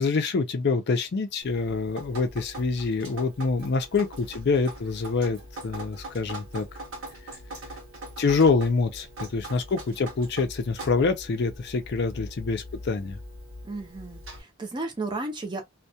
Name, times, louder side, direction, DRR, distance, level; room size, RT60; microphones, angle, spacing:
voice 1, 0.0-6.7 8.2-13.2, left 4 dB, 55° left, 0.5 m, -26 dB
Drip, 1.4-14.4, right 1 dB, 70° right, 0.9 m, -42 dB
voice 2, 13.6-15.7, right 2 dB, 20° right, 0.5 m, -34 dB
2.2 x 2.2 x 2.7 m
head